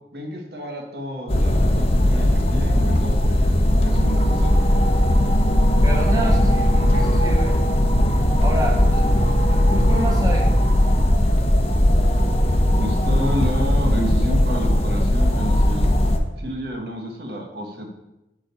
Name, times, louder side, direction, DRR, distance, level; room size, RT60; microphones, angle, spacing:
voice 1, 0.1-3.6 3.8-4.6 12.8-15.9 16.4-17.9, equal, 65° right, 2 dB, 1.4 m, -30 dB
sound 1, 1.3-16.2, left 1 dB, 35° left, 0.9 m, -18 dB
voice 2, 5.8-7.6 8.4-9.1 9.4-10.5, right 1 dB, 20° right, -1 dB, 1.3 m, -28 dB
7.4 x 5.0 x 6.9 m, 0.93 s
head